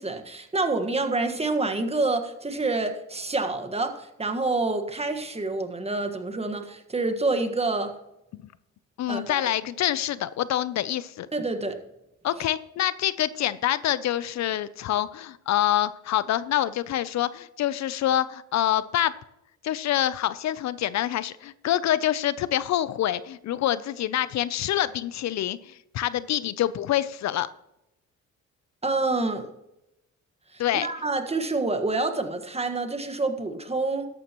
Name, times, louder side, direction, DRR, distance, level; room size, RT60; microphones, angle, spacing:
voice 1, 0.0-7.9 9.1-9.5 11.3-11.8 28.8-29.5 30.5-34.1, right 3 dB, 20° right, 7 dB, 1.5 m, -27 dB
voice 2, 9.0-11.3 12.2-19.1 19.6-27.5 30.6-30.9, left 12 dB, 65° left, 17 dB, 0.5 m, -26 dB
13.5 x 11.5 x 3.0 m, 0.87 s
cardioid pair, 90°, 30 cm